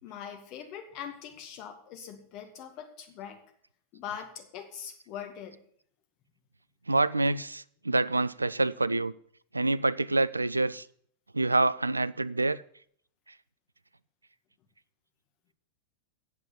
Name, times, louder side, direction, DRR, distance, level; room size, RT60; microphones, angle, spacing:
voice 1, 0.0-3.4 3.9-5.6, left 8 dB, 40° left, 5 dB, 2.0 m, -42 dB
voice 2, 6.9-9.1 9.5-10.8 11.3-12.6, right 2 dB, 80° right, 18 dB, 0.3 m, -27 dB
8.7 x 7.1 x 8.3 m, 0.62 s
figure-of-eight pair, 90°, 0 cm